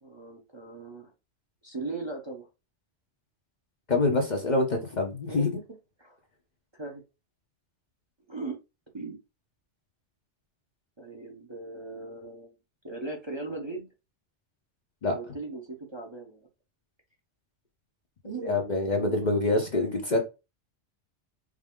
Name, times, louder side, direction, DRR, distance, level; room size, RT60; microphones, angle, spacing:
voice 1, 0.0-1.1 1.6-2.5 5.3-5.6 6.0-6.2 6.7-7.0 8.3-8.6 8.9-9.2 11.0-12.5 12.8-13.9 15.1-16.5 18.2-18.6 19.0-19.2, right 3 dB, 25° right, 0.8 m, -38 dB
voice 2, 3.9-5.5 15.0-15.1 18.4-20.2, left 2 dB, 45° left, 0.8 m, -25 dB
4.9 x 2.0 x 3.6 m
omnidirectional pair, 1.2 m